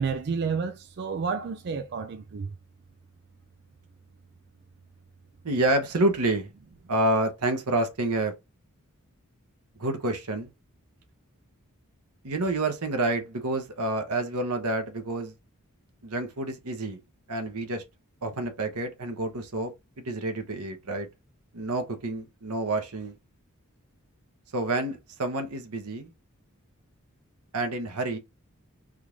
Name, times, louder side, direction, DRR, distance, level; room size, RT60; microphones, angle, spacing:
voice 1, 0.0-2.6, right 5 dB, 50° right, 0.4 m, -30 dB
voice 2, 5.4-6.5 6.9-8.3 9.8-10.5 12.2-15.3 16.0-17.0 17.3-17.8 18.2-21.1 21.5-23.2 24.5-26.1 27.5-28.2, right 2 dB, 85° right, 1.0 m, -28 dB
3.6 x 2.5 x 3.0 m
head